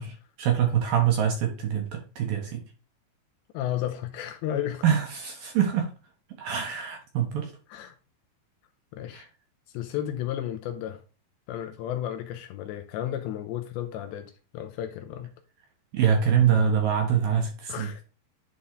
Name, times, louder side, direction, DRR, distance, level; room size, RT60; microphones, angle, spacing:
voice 1, 0.0-2.6 4.8-5.9 6.4-7.5 9.1-9.3 15.9-18.0, right 8 dB, 65° right, 2.5 m, -25 dB
voice 2, 3.5-4.8 7.7-8.0 8.9-9.3 9.7-11.0 11.5-15.3 17.7-18.0, left 11 dB, 80° left, 2.8 m, -33 dB
11.0 x 4.1 x 3.7 m
omnidirectional pair, 5.6 m